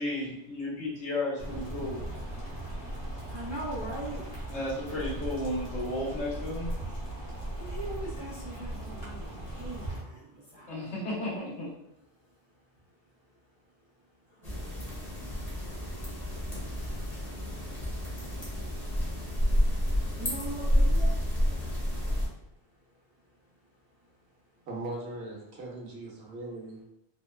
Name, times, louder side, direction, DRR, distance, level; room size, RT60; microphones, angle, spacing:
voice 1, 0.0-2.0 4.5-6.7 10.7-11.7, left 1 dB, 90° left, -6 dB, 1.3 m, -33 dB
sound 1, 1.4-10.0, right 1 dB, 65° left, 1.2 m, -38 dB
voice 2, 3.3-4.5 7.2-10.9 14.3-15.0 19.9-21.3 24.0-24.1, right 2 dB, 35° right, -7 dB, 0.4 m, -42 dB
sound 2, 14.4-22.3, equal, 40° left, 0.9 m, -29 dB
voice 3, 24.7-26.8, right 2 dB, 70° right, -2 dB, 0.9 m, -39 dB
2.9 x 2.1 x 2.2 m, 0.84 s
omnidirectional pair, 1.2 m